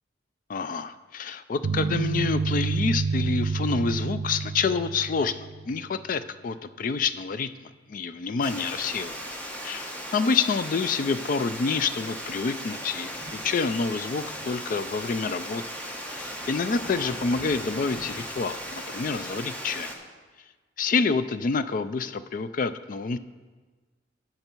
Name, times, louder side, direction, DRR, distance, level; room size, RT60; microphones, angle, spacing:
voice 1, 0.5-9.2 9.6-15.6 16.1-19.9 20.8-23.2, left 4 dB, 45° left, 13 dB, 0.3 m, -28 dB
sound 1, 1.6-5.8, right 4 dB, 75° right, 0.5 m, -28 dB
Water, 8.4-20.0, equal, 10° left, 1.0 m, -37 dB
12.0 x 6.9 x 4.5 m, 1.3 s
head